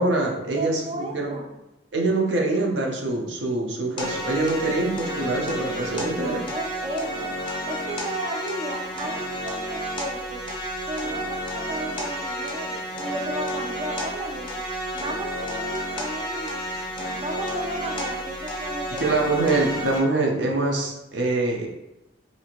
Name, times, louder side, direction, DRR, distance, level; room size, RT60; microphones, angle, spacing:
voice 1, 0.0-1.3 1.9-6.4 19.0-21.7, right 2 dB, 85° right, 0 dB, 0.6 m, -24 dB
voice 2, 0.6-1.5 6.2-7.3 7.7-10.4 10.9-14.5 14.9-16.7 17.2-19.4, right 1 dB, 35° right, 2 dB, 0.4 m, -34 dB
sound 1, 4.0-20.0, equal, 30° left, 0.6 m, -31 dB
2.7 x 2.4 x 2.9 m, 0.92 s
head